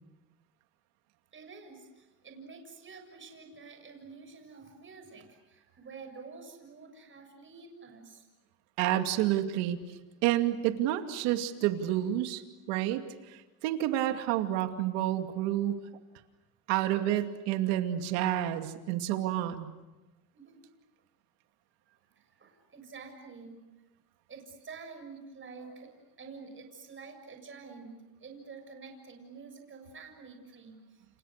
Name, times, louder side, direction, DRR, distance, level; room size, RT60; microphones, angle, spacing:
voice 1, 1.3-8.3 20.3-20.7 21.9-23.6 24.3-31.1, right 4 dB, 30° right, 5 dB, 7.1 m, -49 dB
voice 2, 8.8-9.8 10.2-12.4 12.7-13.0 13.3-15.8 16.7-19.7, right 13 dB, 85° right, 6 dB, 2.6 m, -29 dB
29.5 x 29.5 x 6.7 m, 1.1 s
cardioid pair, 115°, 40 cm